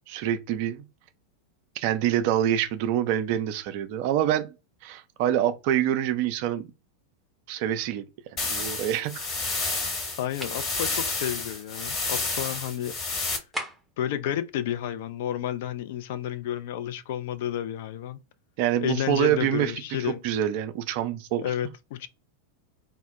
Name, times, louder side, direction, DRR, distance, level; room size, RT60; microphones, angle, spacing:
voice 1, 0.1-0.8 1.8-4.5 4.8-6.7 7.5-8.0 8.4-9.4 18.6-19.7 20.0-21.5, right 11 dB, 45° right, 0.4 m, -26 dB
sound 1, 8.4-13.4, left 3 dB, 30° left, 1.1 m, -30 dB
voice 2, 10.2-12.9 14.0-18.2 18.8-20.2 21.4-22.1, left 11 dB, 50° left, 0.3 m, -31 dB
sound 2, 10.4-10.7 13.5-14.0, equal, 5° right, 0.7 m, -35 dB
2.1 x 2.1 x 3.6 m
figure-of-eight pair, 90°, 0 cm